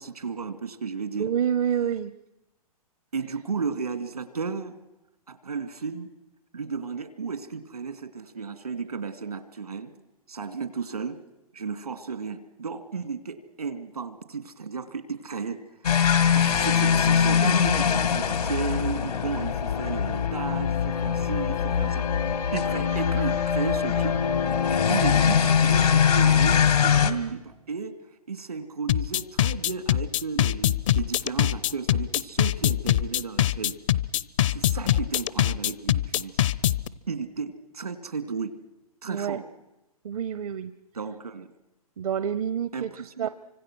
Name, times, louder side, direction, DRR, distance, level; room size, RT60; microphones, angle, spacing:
voice 1, 0.0-1.3 3.1-4.8 5.3-6.1 6.5-9.9 10.3-11.2 11.5-15.9 16.3-22.1 22.5-24.2 24.9-28.0 28.3-33.8 34.5-36.4 37.1-38.6 39.0-39.5 40.9-41.5 42.7-43.3, right 5 dB, 90° right, 10 dB, 2.6 m, -33 dB
voice 2, 1.2-2.1 39.1-39.4 40.0-40.7 42.0-42.9 43.2-43.3, right 8 dB, 65° right, 13 dB, 0.9 m, -27 dB
sound 1, 15.8-27.1, left 7 dB, 80° left, 2.2 m, -22 dB
sound 2, 28.9-36.9, left 12 dB, 55° left, 0.8 m, -23 dB
29.5 x 25.5 x 6.2 m, 0.94 s
hypercardioid pair, 125°, 19 cm